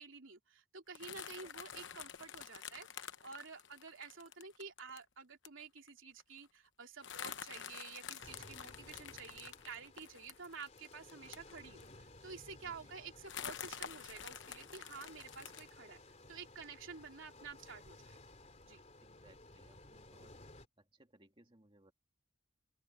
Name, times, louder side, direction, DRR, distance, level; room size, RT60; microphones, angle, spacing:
voice 1, 0.0-18.2 18.6-18.8, right 5 dB, 70° right, 3.1 m, -51 dB
sound 1, 0.9-5.0 5.4-5.6 5.9-6.0 6.2-6.4 7.0-12.0 12.5-12.6 13.2-15.7, left 8 dB, 60° left, 1.0 m, -48 dB
sound 2, 8.2-20.7, left 2 dB, 35° left, 3.1 m, -58 dB
voice 2, 12.6-13.0 19.0-20.4 20.8-21.9, right 1 dB, 25° right, 2.3 m, -66 dB
open air
head